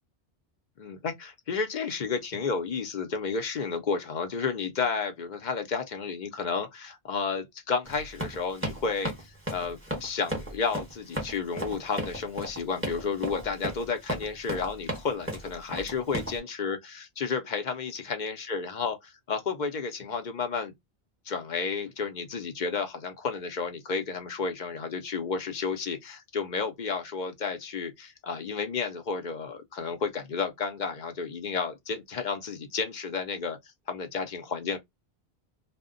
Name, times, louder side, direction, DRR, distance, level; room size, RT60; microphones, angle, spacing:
voice 1, 0.8-20.7 21.3-33.6 33.9-34.8, left 5 dB, 55° left, 0.7 m, -32 dB
Run, 7.8-16.4, equal, 15° right, 0.9 m, -35 dB
2.2 x 2.1 x 3.6 m
omnidirectional pair, 1.0 m